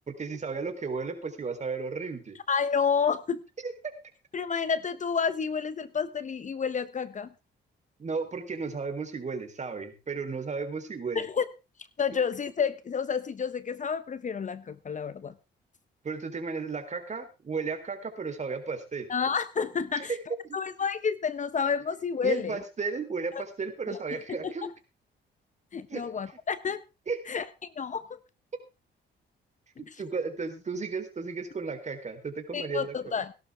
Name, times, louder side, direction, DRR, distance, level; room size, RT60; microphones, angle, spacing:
voice 1, 0.2-2.4 3.6-3.7 8.0-11.3 16.0-19.1 19.9-20.2 20.4-20.6 22.2-24.7 25.9-26.0 27.1-27.2 29.8-33.1, right 4 dB, 35° right, 7 dB, 3.6 m, -34 dB
voice 2, 2.5-3.5 4.3-7.3 11.1-11.4 12.0-15.3 19.1-20.1 20.5-22.6 23.3-23.4 23.9-24.0 24.3-24.5 25.7-26.8 27.3-28.2 32.5-33.3, left 6 dB, 40° left, 15 dB, 0.9 m, -30 dB
17.5 x 11.5 x 3.5 m, 0.29 s
cardioid pair, 90°, 20 cm